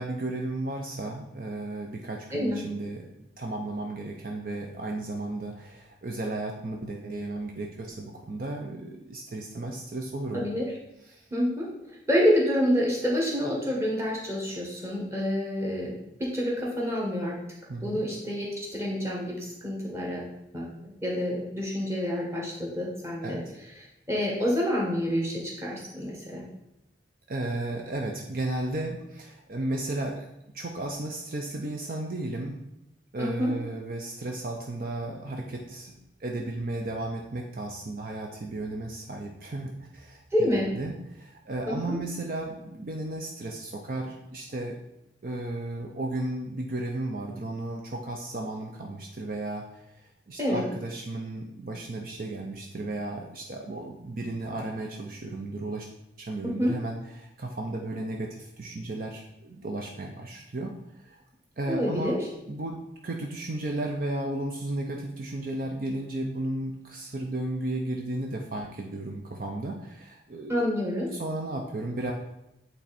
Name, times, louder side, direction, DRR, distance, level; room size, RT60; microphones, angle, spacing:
voice 1, 0.0-10.5 11.0-11.3 17.7-18.0 23.2-23.4 27.3-30.3 30.5-32.6 33.1-44.8 45.2-55.9 56.2-61.2 61.6-62.1 62.5-62.8 63.0-70.7 71.1-72.1, right 2 dB, 50° right, 1 dB, 0.6 m, -34 dB
voice 2, 10.3-10.7 11.3-11.7 12.1-17.3 17.8-20.2 20.5-20.7 21.0-23.4 24.1-26.4 33.2-33.5 40.3-40.7 41.7-42.0 50.4-50.6 56.4-56.7 61.7-62.2 70.5-71.1, equal, 15° right, -3 dB, 1.5 m, -27 dB
8.7 x 3.4 x 4.2 m, 0.86 s
head